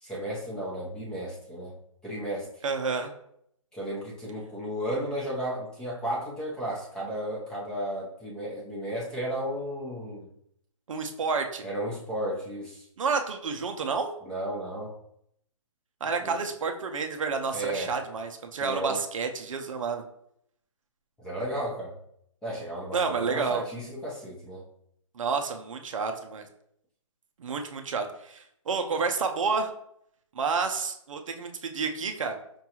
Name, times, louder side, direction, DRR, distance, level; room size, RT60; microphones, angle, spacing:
voice 1, 0.0-1.8 2.0-2.5 3.7-10.3 11.6-12.8 14.3-14.9 16.2-16.4 17.5-17.9 18.6-19.0 21.2-21.9 22.4-24.6, right 1 dB, 5° left, -6 dB, 0.6 m, -34 dB
voice 2, 2.6-3.1 10.9-11.7 13.0-14.1 16.0-20.0 22.9-23.6 25.1-26.5 27.4-29.7 30.3-32.4, right 5 dB, 70° right, 5 dB, 0.5 m, -30 dB
5.2 x 2.3 x 2.8 m, 0.72 s
hypercardioid pair, 150°, 17 cm